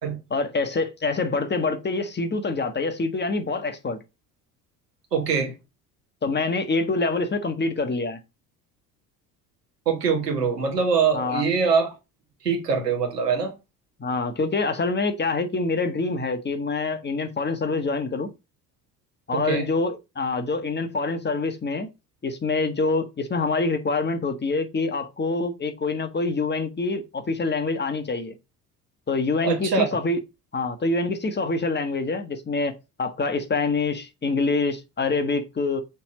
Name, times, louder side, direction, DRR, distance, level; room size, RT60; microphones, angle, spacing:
voice 1, 0.3-4.0 6.2-8.2 11.1-11.4 14.0-18.3 19.3-21.9 22.2-28.3 29.1-30.2 30.5-35.8, left 3 dB, 20° left, 1.4 m, -26 dB
voice 2, 5.1-5.5 9.8-11.9 12.4-13.5 19.3-19.7 29.4-29.9, right 5 dB, 90° right, 1.6 m, -23 dB
5.8 x 3.6 x 5.0 m
figure-of-eight pair, 55°, 47 cm